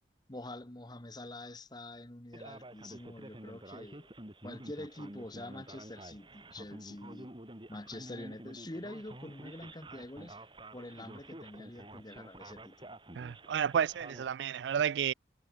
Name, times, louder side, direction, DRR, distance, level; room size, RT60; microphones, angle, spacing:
voice 1, 0.3-4.1 4.4-7.3 7.7-10.4 10.7-13.0, left 1 dB, 25° left, 1.5 m, -46 dB
Male speech man speaking, 2.3-14.3, right 1 dB, 30° right, 4.4 m, -50 dB
voice 2, 13.2-15.1, right 8 dB, 80° right, 0.4 m, -31 dB
head